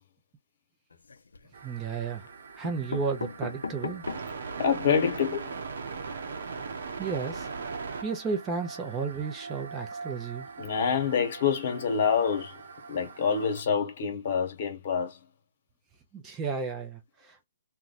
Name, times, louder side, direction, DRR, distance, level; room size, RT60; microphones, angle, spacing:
sound 1, 0.9-1.5 2.3-2.4 2.6-4.4 4.9-5.0 5.2-5.3 5.6-5.8, left 4 dB, 85° left, 0.6 m, -38 dB
sound 2, 1.5-13.6, right 4 dB, 65° right, 0.9 m, -40 dB
voice 1, 1.6-2.3 2.5-4.0 7.0-7.5 8.0-10.5 16.1-17.4, right 5 dB, 15° right, 0.6 m, -33 dB
voice 2, 4.6-5.5 10.6-12.5 12.9-15.2, left 6 dB, 50° left, 1.1 m, -26 dB
3.0 x 2.2 x 4.0 m
hypercardioid pair, 145°, 0 cm